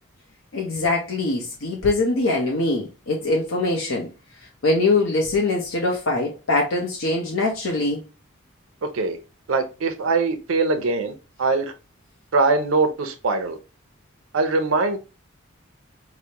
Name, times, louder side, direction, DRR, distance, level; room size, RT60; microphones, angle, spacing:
voice 1, 0.5-4.1 4.6-8.0, left 2 dB, 80° left, 0.7 m, -23 dB
voice 2, 8.8-9.2 9.5-11.7 12.3-13.6 14.3-15.0, right 3 dB, 90° right, 0.5 m, -22 dB
4.8 x 2.1 x 2.8 m
head